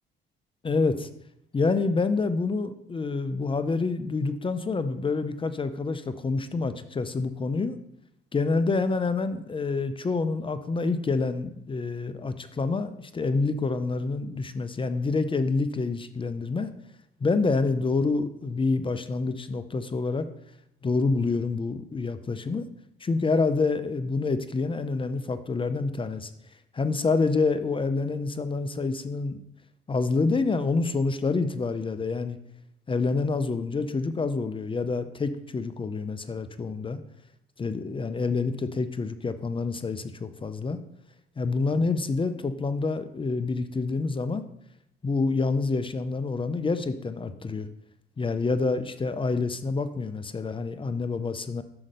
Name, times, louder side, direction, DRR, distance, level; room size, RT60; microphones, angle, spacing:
voice 1, 0.6-1.1 1.5-7.8 8.3-16.7 17.2-20.3 20.8-22.7 23.0-26.3 26.7-29.4 29.9-32.4 32.9-37.0 37.6-40.8 41.4-44.4 45.0-47.7 48.2-51.6, left 3 dB, 25° left, 12 dB, 0.5 m, -27 dB
5.8 x 5.1 x 6.5 m, 0.80 s
cardioid pair, 90°, 20 cm